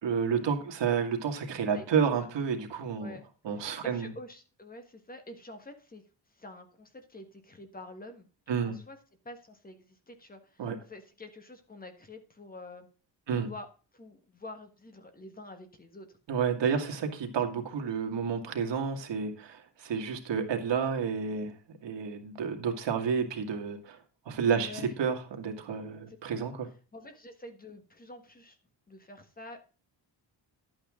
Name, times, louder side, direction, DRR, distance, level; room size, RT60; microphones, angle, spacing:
voice 1, 0.0-3.1 3.4-4.1 8.5-8.8 10.6-10.8 13.3-13.5 16.3-21.5 21.8-24.0 24.3-26.7, right 6 dB, 75° right, 4 dB, 2.2 m, -30 dB
voice 2, 3.5-6.0 6.3-9.0 9.2-12.9 13.3-13.7 13.9-16.2 16.7-17.0 24.6-24.9 26.1-26.2 26.9-28.6 28.9-29.6, left 2 dB, 20° left, 7 dB, 1.6 m, -47 dB
11.0 x 8.7 x 3.8 m, 0.35 s
wide cardioid pair, 170°, 43 cm